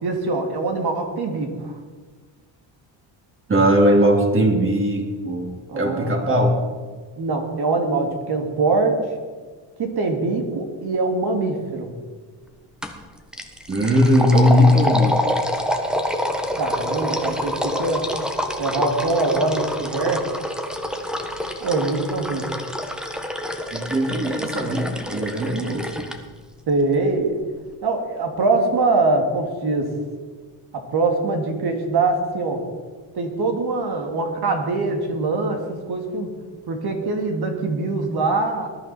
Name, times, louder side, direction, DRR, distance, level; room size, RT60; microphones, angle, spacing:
voice 1, 0.0-1.7 5.7-6.1 7.2-9.0 9.8-11.9 16.5-18.1 18.6-20.3 21.6-22.5 26.7-27.4 27.8-29.9 30.7-32.6 33.1-36.3 36.7-38.7, right 3 dB, 55° right, 3 dB, 2.9 m, -23 dB
voice 2, 3.5-6.6 13.7-15.4 23.7-25.9, equal, 25° right, 1 dB, 3.3 m, -19 dB
sound 1, 12.8-13.0 13.3-26.2, equal, ahead, 1.4 m, -27 dB
20.5 x 11.0 x 4.5 m, 1.5 s
cardioid pair, 115°, 46 cm